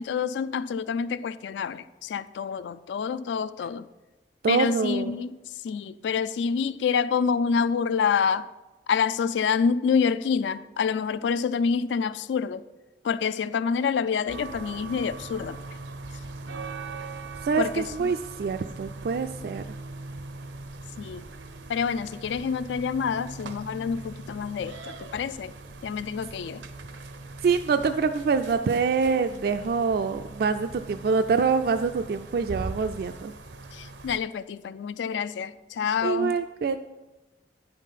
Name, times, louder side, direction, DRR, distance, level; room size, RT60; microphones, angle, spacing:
voice 1, 0.0-3.9 4.5-5.3 5.6-8.5 8.9-12.6 13.0-15.6 17.6-18.1 21.0-21.2 21.7-25.5 25.8-26.6 33.7-36.4, left 6 dB, 80° left, 16 dB, 0.3 m, -27 dB
voice 2, 4.4-5.2 17.4-19.6 27.4-33.3 36.0-36.8, right 5 dB, 55° right, 8 dB, 0.3 m, -25 dB
sound 1, 14.3-34.2, right 3 dB, 90° right, 0.7 m, -41 dB
9.7 x 5.5 x 5.7 m, 1.1 s
head